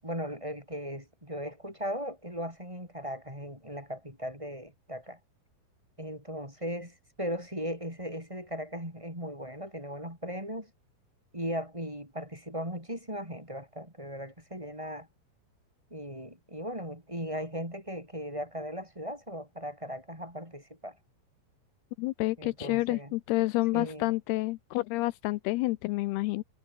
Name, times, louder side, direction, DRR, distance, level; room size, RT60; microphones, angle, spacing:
voice 1, 0.0-5.2 6.0-10.7 11.3-15.1 15.9-20.9 22.4-23.1 23.7-24.1, equal, 5° right, 6.9 m, -38 dB
voice 2, 22.0-26.4, left 20 dB, 90° left, 2.3 m, -29 dB
omnidirectional pair, 5.2 m